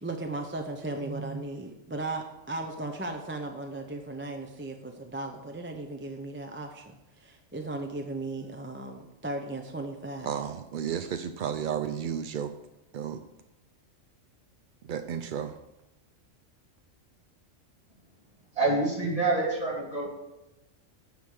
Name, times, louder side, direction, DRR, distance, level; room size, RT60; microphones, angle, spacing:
voice 1, 0.0-10.5, right 2 dB, 15° right, 4 dB, 0.6 m, -36 dB
voice 2, 10.3-12.5 12.9-13.2 14.9-15.5, right 8 dB, 65° right, 8 dB, 0.5 m, -32 dB
voice 3, 18.6-20.1, right 2 dB, 30° right, -3 dB, 3.0 m, -27 dB
9.4 x 5.0 x 7.2 m, 0.98 s
omnidirectional pair, 1.3 m